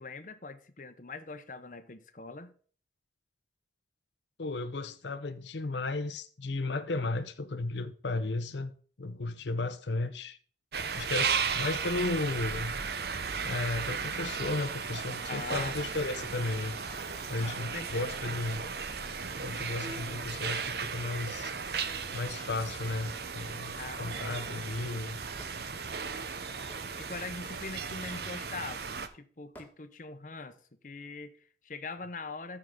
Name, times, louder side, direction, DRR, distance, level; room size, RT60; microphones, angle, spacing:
voice 1, 0.0-2.5 15.3-15.8 17.4-18.2 23.8-24.7 27.0-32.6, left 3 dB, 45° left, 0.8 m, -43 dB
voice 2, 4.4-8.7 9.0-10.4 10.9-12.8 13.4-16.8 17.3-18.6 19.4-21.5 22.1-25.2, left 2 dB, 80° left, 0.7 m, -34 dB
sound 1, 10.7-29.1, right 6 dB, 60° right, 0.8 m, -36 dB
sound 2, 16.2-26.6, right 1 dB, 40° right, 2.5 m, -51 dB
Hammer / Wood, 25.4-25.6 26.7-26.9 28.1-28.4 29.5-29.7, equal, 10° left, 1.5 m, -50 dB
14.0 x 4.9 x 3.8 m
head